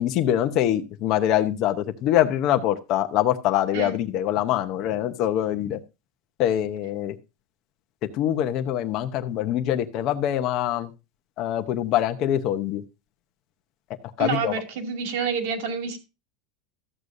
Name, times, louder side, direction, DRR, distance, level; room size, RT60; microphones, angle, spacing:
voice 1, 0.0-5.8 6.4-7.1 8.2-10.9 11.4-12.8 14.2-14.5, left 11 dB, 35° left, 0.8 m, -24 dB
voice 2, 14.2-16.0, right 6 dB, 60° right, 2.3 m, -28 dB
13.5 x 8.1 x 2.6 m
supercardioid pair, 175°, 0 cm